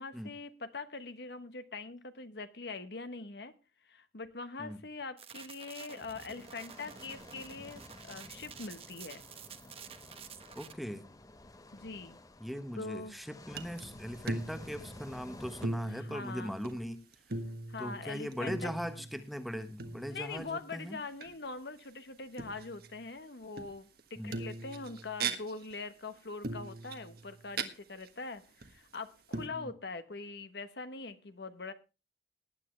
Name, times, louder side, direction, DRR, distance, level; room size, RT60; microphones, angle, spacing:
voice 1, 0.0-3.5 3.8-9.2 11.7-12.2 12.8-13.2 15.8-16.6 17.7-18.7 20.1-31.7, left 3 dB, 70° left, 10 dB, 1.2 m, -43 dB
sound 1, 5.2-10.7, right 7 dB, 35° right, 0.9 m, -50 dB
sound 2, 6.4-15.7, left 1 dB, 20° left, 0.7 m, -52 dB
voice 2, 10.5-11.1 12.4-17.0 17.8-21.0 24.2-24.3 29.5-29.7, equal, ahead, 9 dB, 1.1 m, -40 dB
sound 3, 13.5-13.8 14.1-15.3 15.6-16.9 17.1-19.2 19.8-20.5 21.1-21.3 22.3-23.1 23.6-24.0 24.3-25.8 26.4-27.7 28.0-28.1 28.6-28.9 29.3-29.5, right 3 dB, 60° right, 1.4 m, -40 dB
19.0 x 9.7 x 3.2 m, 0.30 s
head